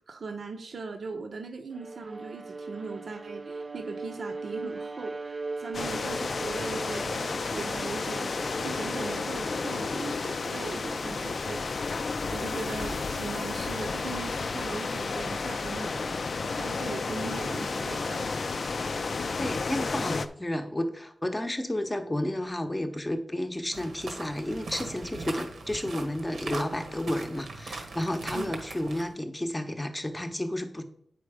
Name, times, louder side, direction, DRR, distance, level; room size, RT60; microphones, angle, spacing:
voice 1, 0.1-8.3 8.6-11.6 12.3-16.1 16.5-18.4 28.3-28.5, right 4 dB, 60° right, 4 dB, 0.8 m, -39 dB
Bowed string instrument, 1.7-10.1, right 3 dB, 35° right, 0.3 m, -39 dB
sound 1, 5.7-20.3, left 4 dB, 55° left, 0.5 m, -32 dB
voice 2, 19.4-30.8, left 1 dB, 15° left, 7 dB, 0.9 m, -31 dB
sound 2, 23.7-29.1, right 3 dB, 85° right, 1.3 m, -40 dB
8.6 x 5.1 x 4.9 m, 0.67 s
wide cardioid pair, 115°, 0 cm